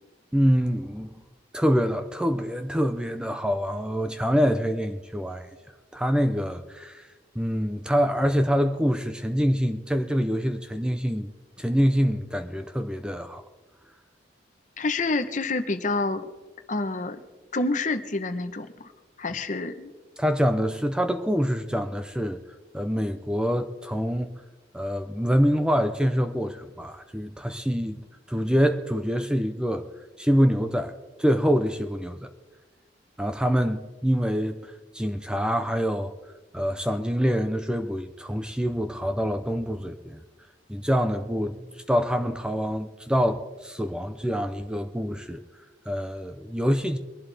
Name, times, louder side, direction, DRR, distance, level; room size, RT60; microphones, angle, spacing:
voice 1, 0.3-1.2 1.5-5.5 5.9-7.1 7.4-11.3 11.6-13.4 20.2-22.4 22.7-24.3 24.7-29.9 30.2-30.9 31.2-32.2 33.2-36.1 36.5-40.2 40.7-45.4 45.9-47.0, equal, 5° right, 0.6 m, -25 dB
voice 2, 14.8-16.3 16.7-17.2 17.5-18.9 19.2-19.9, left 3 dB, 45° left, 1.0 m, -28 dB
22.5 x 11.5 x 3.4 m
head